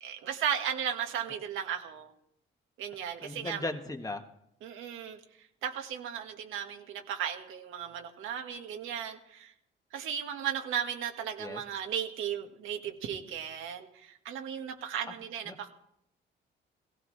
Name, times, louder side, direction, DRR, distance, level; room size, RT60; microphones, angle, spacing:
voice 1, 0.0-2.1 2.8-3.7 4.6-5.2 5.6-9.5 9.9-15.7, right 9 dB, 85° right, 4 dB, 1.6 m, -35 dB
voice 2, 3.2-4.2 11.4-11.6 15.5-15.6, left 2 dB, 15° left, 5 dB, 1.4 m, -37 dB
17.0 x 16.0 x 3.2 m, 0.77 s
cardioid pair, 90°, 20 cm